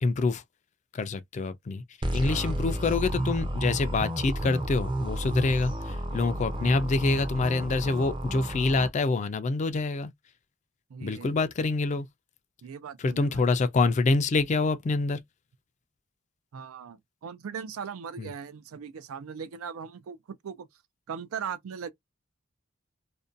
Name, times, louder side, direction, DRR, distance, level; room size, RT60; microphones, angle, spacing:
voice 1, 0.0-0.4 0.9-1.8 2.1-10.1 11.0-12.1 13.0-15.2 18.2-18.3, left 3 dB, 35° left, 0.3 m, -26 dB
sound 1, 2.0-8.9, right 1 dB, 25° right, 0.5 m, -31 dB
voice 2, 2.2-2.7 10.9-11.4 12.6-13.5 16.5-20.7 21.1-21.9, right 7 dB, 90° right, 0.4 m, -39 dB
2.5 x 2.2 x 2.5 m
head